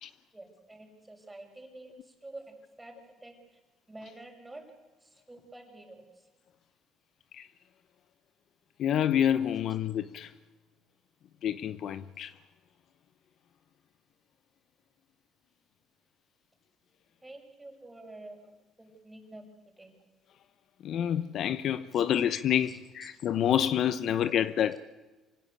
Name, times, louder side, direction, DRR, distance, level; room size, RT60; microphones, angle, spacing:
voice 1, 0.3-3.6 3.9-4.6 5.0-6.3 17.2-18.5 18.8-19.4 19.8-20.0 21.9-22.0 22.6-23.1, right 2 dB, 10° right, 6.3 m, -49 dB
voice 2, 8.8-10.3 11.4-12.3 20.8-24.8, left 10 dB, 60° left, 0.9 m, -28 dB
26.0 x 16.5 x 8.4 m
supercardioid pair, 90°, 0 cm